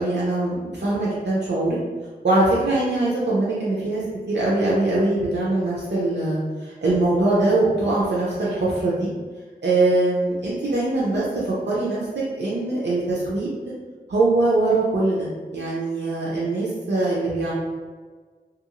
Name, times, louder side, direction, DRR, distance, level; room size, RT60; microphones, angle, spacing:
voice 1, 0.0-1.8 2.2-9.1 9.6-13.5 14.1-17.5, right 2 dB, 90° right, -6 dB, 0.6 m, -22 dB
3.1 x 2.4 x 2.9 m, 1.4 s
wide cardioid pair, 65°, 17 cm